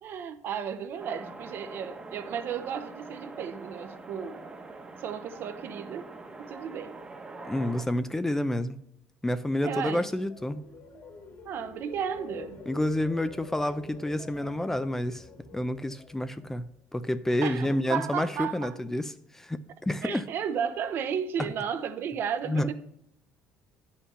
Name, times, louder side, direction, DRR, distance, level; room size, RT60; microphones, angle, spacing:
voice 1, 0.0-4.4 5.0-6.0 6.4-6.9 9.6-10.1 11.4-12.6 17.4-18.8 20.0-22.7, right 7 dB, 55° right, 0.9 m, -33 dB
sound 1, 1.0-7.9, right 3 dB, 20° right, 1.1 m, -44 dB
voice 2, 7.5-8.8 9.2-10.6 12.7-15.2 15.5-16.6 16.9-20.2 22.5-22.7, left 1 dB, 10° left, 0.5 m, -29 dB
sound 2, 9.7-16.9 17.3-17.7, left 4 dB, 55° left, 2.7 m, -47 dB
9.7 x 5.8 x 5.5 m
cardioid pair, 105°, 4 cm